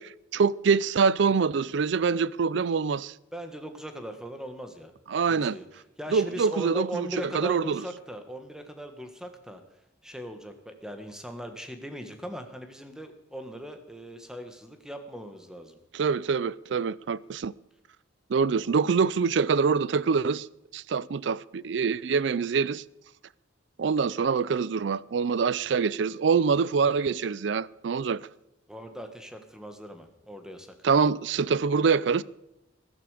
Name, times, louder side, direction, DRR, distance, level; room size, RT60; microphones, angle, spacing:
voice 1, 0.0-3.1 5.1-5.6 6.1-7.1 7.3-7.8 15.9-17.5 18.3-20.5 20.7-22.8 23.8-28.2 30.8-32.2, right 5 dB, 65° right, 0.4 m, -25 dB
voice 2, 3.3-4.9 5.3-9.6 10.0-15.8 28.7-30.8, equal, 5° right, 1.5 m, -39 dB
14.5 x 13.0 x 5.0 m
head